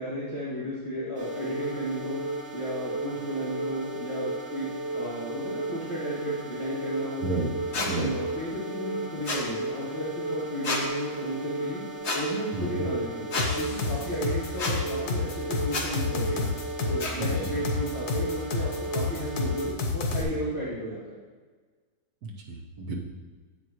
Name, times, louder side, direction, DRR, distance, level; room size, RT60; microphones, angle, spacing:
voice 1, 0.0-2.2 2.5-7.2 7.7-11.8 12.1-16.5 16.8-21.2, equal, 20° left, -12 dB, 2.3 m, -34 dB
sound 1, 1.1-19.7, right 2 dB, 55° right, 2.4 m, -35 dB
sound 2, 7.7-7.9 9.2-9.4 10.6-10.8 12.0-12.2 13.3-13.5 14.6-14.7 15.7-15.9 17.0-17.1, left 3 dB, 45° left, 1.5 m, -29 dB
voice 2, 12.5-12.8 17.2-17.6 22.2-23.0, right 3 dB, 75° right, 0 dB, 1.7 m, -32 dB
sound 3, 13.4-20.2, left 3 dB, 80° left, 1.6 m, -29 dB
10.5 x 7.8 x 3.1 m, 1.4 s
omnidirectional pair, 1.6 m